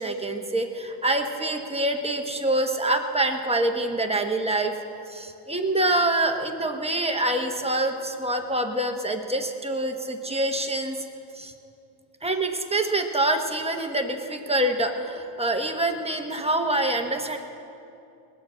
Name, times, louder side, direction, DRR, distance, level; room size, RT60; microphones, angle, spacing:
voice 1, 0.0-4.7 5.1-11.0 11.4-11.5 12.2-17.4, right 1 dB, 10° right, 4 dB, 1.0 m, -26 dB
20.5 x 7.3 x 7.5 m, 2.7 s
cardioid pair, 115°, 50 cm